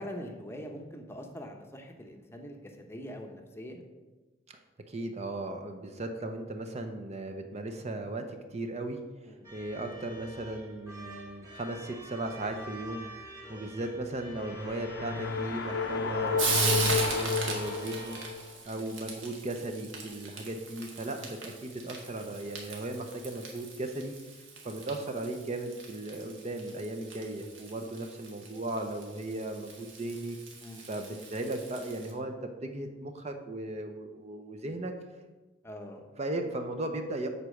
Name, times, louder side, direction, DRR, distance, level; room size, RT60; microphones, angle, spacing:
voice 1, 0.0-3.8 9.2-9.5 13.4-13.7 18.7-18.9 20.2-20.4 30.6-30.8 35.6-36.1, equal, 15° left, 3 dB, 0.8 m, -43 dB
voice 2, 4.9-9.0 9.5-13.1 13.5-18.2 18.7-24.1 24.6-30.4 30.8-34.9 36.2-37.3, right 2 dB, 35° right, 5 dB, 0.6 m, -37 dB
sound 1, 9.4-18.3, equal, 15° right, 1.3 m, -47 dB
sound 2, 14.2-18.5, left 4 dB, 65° left, 0.7 m, -31 dB
Frying (food), 15.2-32.1, right 4 dB, 75° right, 1.7 m, -39 dB
8.0 x 4.8 x 6.4 m, 1.2 s
head